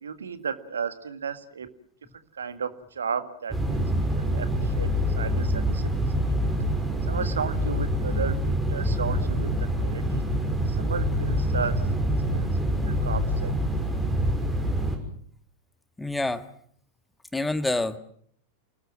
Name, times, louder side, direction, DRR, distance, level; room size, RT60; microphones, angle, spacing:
voice 1, 0.0-1.7 2.3-2.7 3.0-3.8 4.2-4.9 5.2-5.8 7.0-9.5 9.8-10.2 10.7-11.8 12.2-12.5 12.9-13.5, right 6 dB, 70° right, 11 dB, 1.9 m, -33 dB
sound 1, 3.5-15.0, equal, 10° right, 6.3 m, -26 dB
voice 2, 16.0-16.4 17.3-18.0, left 2 dB, 5° left, 11 dB, 1.8 m, -27 dB
29.5 x 19.5 x 7.4 m, 0.63 s
figure-of-eight pair, 90°, 0 cm